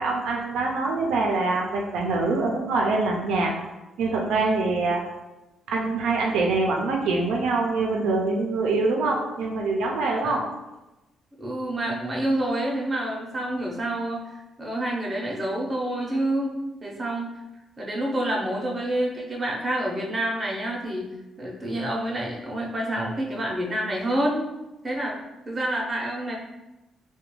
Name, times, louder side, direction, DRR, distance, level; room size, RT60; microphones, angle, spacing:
voice 1, 0.0-3.5 4.0-5.0 5.7-10.4, right 3 dB, 85° right, -1 dB, 0.4 m, -24 dB
voice 2, 11.4-17.3 17.8-21.1 21.4-24.4 24.8-25.2 25.5-26.4, right 1 dB, 30° right, -2 dB, 0.7 m, -28 dB
2.3 x 2.2 x 3.0 m, 1.0 s
cardioid pair, 90°, 0 cm